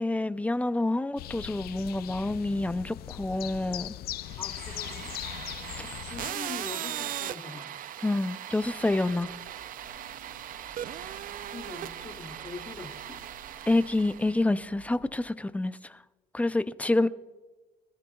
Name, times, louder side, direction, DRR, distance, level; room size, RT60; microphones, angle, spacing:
voice 1, 0.0-3.9 8.0-9.3 13.7-16.0 16.3-17.1, left 2 dB, 10° left, 0.5 m, -27 dB
sound 1, 1.2-6.3, left 14 dB, 65° left, 0.5 m, -39 dB
sound 2, 4.2-14.4, right 11 dB, 55° right, 0.5 m, -39 dB
voice 2, 4.4-5.1 6.0-7.7 11.5-13.2 17.0-17.1, left 4 dB, 30° left, 2.4 m, -43 dB
sound 3, 8.6-15.1, right 2 dB, 85° right, 4.1 m, -54 dB
23.5 x 13.5 x 2.3 m
cardioid pair, 110°, 17 cm